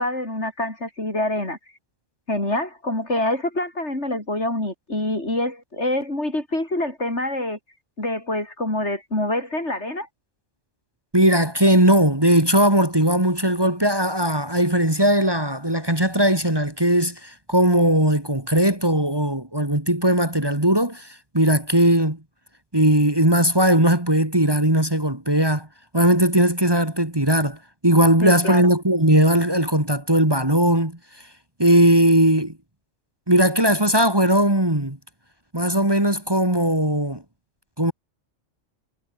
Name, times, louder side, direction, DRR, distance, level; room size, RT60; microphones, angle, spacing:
voice 1, 0.0-1.6 2.3-7.6 8.0-10.1 28.2-28.7, left 1 dB, 65° left, 7.3 m, -26 dB
voice 2, 11.1-21.1 21.3-22.2 22.7-25.7 25.9-27.6 27.8-31.0 31.6-32.5 33.3-35.0 35.5-37.2 37.8-37.9, right 1 dB, 20° right, 2.8 m, -19 dB
omnidirectional pair, 1.3 m